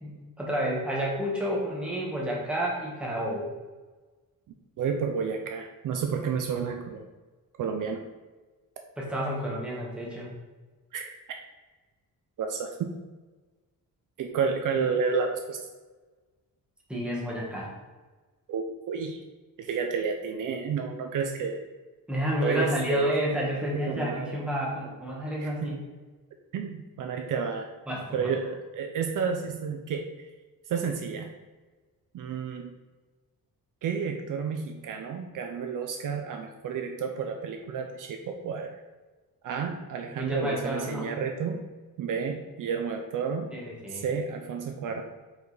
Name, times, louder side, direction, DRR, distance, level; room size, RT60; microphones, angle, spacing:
voice 1, 0.0-3.5 9.0-10.3 16.9-17.7 22.1-25.8 27.9-28.3 40.1-41.1 43.5-44.0, equal, 5° right, -4 dB, 1.3 m, -30 dB
voice 2, 4.8-7.0 7.6-8.0 10.9-11.1 12.4-12.9 14.2-15.6 18.5-19.2 19.6-21.6 22.4-23.1 23.9-24.4 25.4-25.5 26.5-27.7 28.1-30.1 30.7-31.3 32.1-32.7 33.8-38.8 39.4-41.6 42.0-43.5 43.9-45.0, right 6 dB, 60° right, 4 dB, 0.6 m, -31 dB
5.0 x 5.0 x 4.0 m, 1.3 s
cardioid pair, 170°, 36 cm